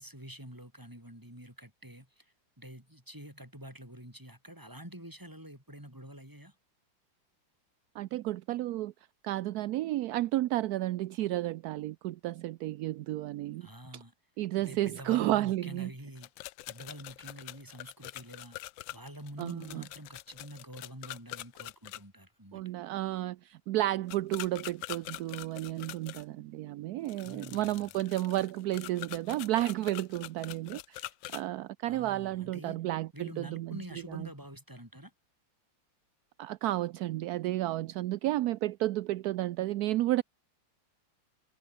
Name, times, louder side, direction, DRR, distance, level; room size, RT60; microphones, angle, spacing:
voice 1, 0.0-6.6 13.6-14.1 14.6-16.3 16.7-18.6 18.9-22.6 27.2-27.9 31.9-32.8 33.1-35.1, right 1 dB, 10° right, 6.1 m, -47 dB
voice 2, 7.9-8.9 9.2-13.7 14.4-15.9 19.4-19.8 22.5-33.8 34.1-34.3 36.4-40.2, right 15 dB, 70° right, 0.9 m, -32 dB
sound 1, 16.2-22.0 24.1-26.2 27.1-31.4, left 17 dB, 85° left, 1.3 m, -44 dB
omnidirectional pair, 2.1 m